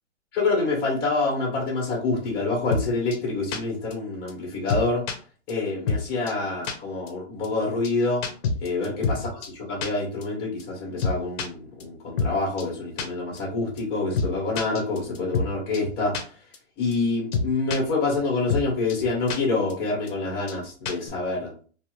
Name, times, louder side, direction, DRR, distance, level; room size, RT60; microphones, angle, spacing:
voice 1, 0.3-5.0 5.5-8.2 8.6-16.4 16.8-21.6, left 3 dB, 25° left, -2 dB, 1.6 m, -27 dB
sound 1, 2.7-2.8 3.1-3.2 3.5-3.6 3.9-4.0 4.3-4.4 4.7-5.1 5.5-5.6 5.9-6.0 6.3-6.4 6.6-6.7 7.1-7.2 7.4-7.5 7.8-7.9 8.2-9.2 9.4-9.5 9.8-9.9 10.2-10.3 10.6-10.7 11.0-11.5 11.8-11.9 12.2-12.3 12.6-12.7 13.0-13.1 13.4-13.5 13.8-13.9 14.2-14.3 14.6-15.5 15.7-15.8 16.1-16.2 16.5-16.6 16.9-17.0 17.3-17.8 18.1-18.2 18.5-18.6 18.9-19.0 19.3-19.4 19.7-19.8 20.1-20.2 20.5-20.6 20.9-21.1, left 4 dB, 55° left, 0.9 m, -26 dB
2.8 x 2.7 x 3.1 m, 0.41 s
hypercardioid pair, 150°, 36 cm